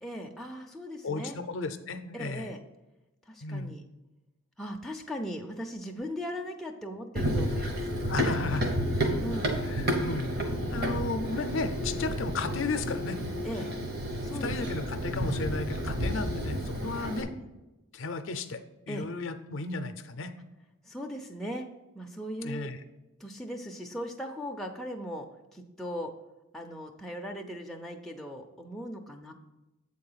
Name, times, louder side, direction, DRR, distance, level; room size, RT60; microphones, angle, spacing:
voice 1, 0.0-1.4 2.1-2.6 3.3-3.8 4.6-8.1 9.2-9.7 13.4-13.7 14.2-14.8 16.8-16.9 18.9-19.1 20.8-21.7 21.9-22.7 23.2-26.1 26.5-29.3, equal, ahead, 1 dB, 0.4 m, -38 dB
voice 2, 1.0-2.5 3.4-3.7 8.1-9.0 9.6-13.2 14.4-17.3 17.9-20.3 22.4-22.8, left 3 dB, 60° left, 9 dB, 0.5 m, -34 dB
Run, 7.2-17.2, equal, 45° right, 1.0 m, -31 dB
8.2 x 3.8 x 5.6 m, 1.0 s
head